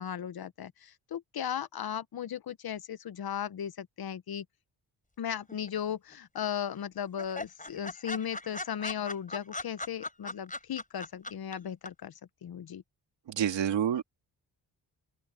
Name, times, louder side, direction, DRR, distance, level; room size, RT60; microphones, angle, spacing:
voice 1, 0.0-4.4 5.2-12.1 12.4-12.8, left 9 dB, 60° left, 1.0 m, -36 dB
sound 1, 5.5-6.1 6.4-6.5 6.8-6.9 7.2-11.5 11.8-11.9, left 2 dB, 20° left, 5.4 m, -39 dB
voice 2, 13.3-14.0, right 9 dB, 90° right, 2.4 m, -28 dB
open air
cardioid pair, 75°, 42 cm